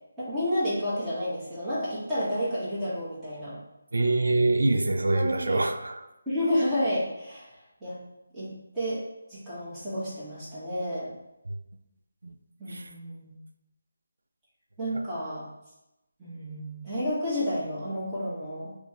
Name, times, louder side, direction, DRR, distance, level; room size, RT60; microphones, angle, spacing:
voice 1, 0.2-3.6 5.1-5.6 6.3-7.5 7.8-8.0 8.3-9.0 9.3-11.1 12.6-13.4 14.8-15.4 16.2-18.7, equal, 5° right, -13 dB, 1.2 m, -30 dB
voice 2, 3.9-6.1 11.5-11.6 12.2-12.3 12.7-12.9 14.9-15.0, right 2 dB, 80° right, 6 dB, 0.4 m, -25 dB
4.2 x 2.2 x 2.9 m, 0.92 s
figure-of-eight pair, 165°, 0 cm